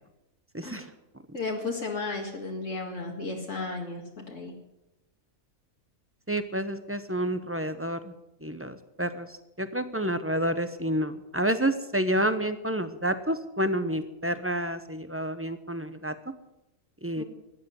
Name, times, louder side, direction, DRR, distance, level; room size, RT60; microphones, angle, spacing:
voice 1, 0.5-0.9 6.3-8.1 8.4-16.1 17.0-17.2, right 1 dB, 10° right, 10 dB, 0.8 m, -29 dB
voice 2, 1.3-4.5 17.2-17.3, left 3 dB, 65° left, 0 dB, 2.4 m, -34 dB
13.5 x 10.5 x 9.4 m, 0.93 s
omnidirectional pair, 1.4 m